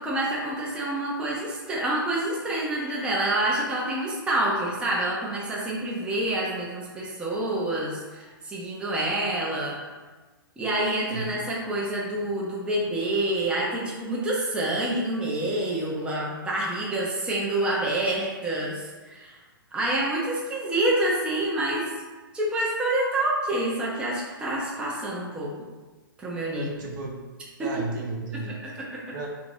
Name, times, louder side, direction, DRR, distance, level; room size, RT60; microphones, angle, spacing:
voice 1, 0.0-9.8 10.6-19.4 19.7-21.9 22.3-25.7 26.2-26.7 27.6-27.7 28.9-29.1, right 1 dB, 10° right, -5 dB, 0.5 m, -27 dB
voice 2, 26.5-27.2 27.6-28.6 29.1-29.3, right 2 dB, 55° right, 0 dB, 0.8 m, -33 dB
3.3 x 2.6 x 3.3 m, 1.3 s
hypercardioid pair, 130°, 12 cm